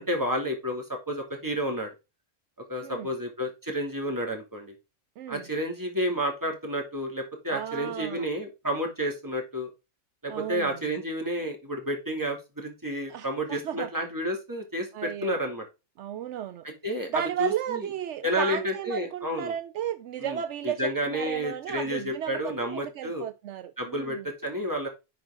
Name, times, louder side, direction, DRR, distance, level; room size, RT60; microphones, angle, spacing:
voice 1, 0.0-1.9 2.7-4.7 5.3-9.7 10.2-15.6 16.6-17.9 18.2-19.5 20.2-23.2 23.8-24.9, equal, 15° right, 2.6 m, -31 dB
voice 2, 7.5-8.3 10.3-10.7 13.1-13.9 14.9-15.4 16.0-16.6 17.1-24.2, right 10 dB, 75° right, 0.9 m, -34 dB
10.5 x 4.8 x 3.8 m
omnidirectional pair, 1.2 m